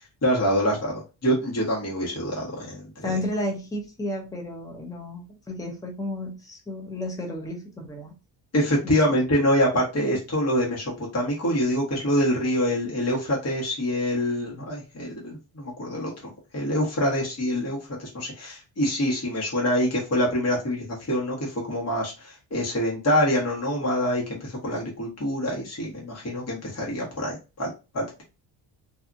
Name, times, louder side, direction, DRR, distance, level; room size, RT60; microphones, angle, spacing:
voice 1, 0.2-2.8 8.5-16.1 16.5-28.2, equal, 30° left, 1.3 m, -25 dB
voice 2, 3.0-8.1 8.8-8.9, left 1 dB, 10° left, 0.6 m, -32 dB
2.7 x 2.4 x 2.5 m
cardioid pair, 130°, 48 cm